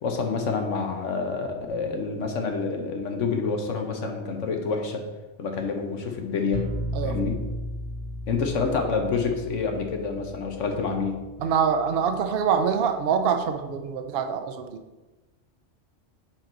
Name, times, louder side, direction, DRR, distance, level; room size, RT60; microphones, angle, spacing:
voice 1, 0.0-5.0 5.4-6.7 7.0-7.3 8.3-11.2, left 4 dB, 90° left, 4 dB, 1.3 m, -28 dB
sound 1, 6.5-12.3, equal, 30° left, 1.5 m, -36 dB
voice 2, 11.4-14.8, right 7 dB, 60° right, 8 dB, 0.8 m, -25 dB
7.6 x 4.5 x 3.9 m, 1.2 s
omnidirectional pair, 1.2 m